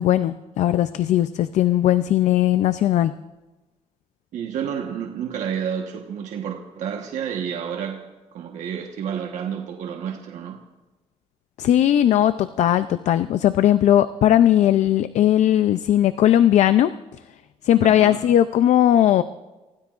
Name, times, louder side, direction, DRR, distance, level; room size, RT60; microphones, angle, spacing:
voice 1, 0.0-3.1 11.6-16.9 17.6-19.2, left 11 dB, 70° left, 12 dB, 0.5 m, -18 dB
voice 2, 4.3-8.1 8.3-10.6 17.8-18.2, right 8 dB, 80° right, 2 dB, 1.3 m, -30 dB
29.5 x 16.5 x 2.5 m, 1.2 s
cardioid pair, 150°, 12 cm